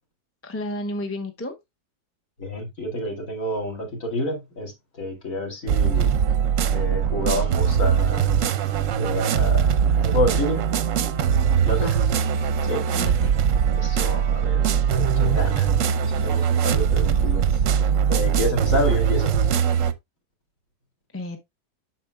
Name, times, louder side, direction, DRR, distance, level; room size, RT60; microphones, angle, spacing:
voice 1, 0.4-1.6 11.7-12.0 12.9-13.4 21.1-21.4, left 1 dB, 10° left, 0.7 m, -32 dB
voice 2, 2.4-6.1 6.7-9.7 10.0-10.7 11.6-11.9 12.6-12.8 13.7-17.6 18.1-19.4, left 1 dB, 55° left, 2.6 m, -29 dB
sound 1, 5.7-19.9, right 7 dB, 60° right, 0.9 m, -21 dB
8.5 x 6.2 x 2.2 m
omnidirectional pair, 1.7 m